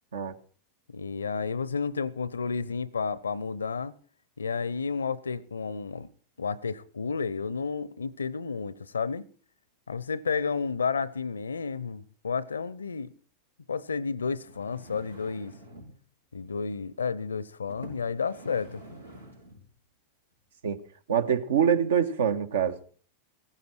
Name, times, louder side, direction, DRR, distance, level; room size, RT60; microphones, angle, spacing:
voice 1, 0.9-3.9 4.4-6.1 6.4-9.2 9.9-13.1 13.7-15.6 16.3-18.8, left 5 dB, 75° left, 0.8 m, -31 dB
sound 1, 14.4-16.0 16.8-17.0 17.7-19.7 20.3-20.4, right 1 dB, 85° right, 5.4 m, -48 dB
voice 2, 21.1-22.8, right 8 dB, 65° right, 1.4 m, -25 dB
16.5 x 15.0 x 4.5 m
figure-of-eight pair, 90°, 0 cm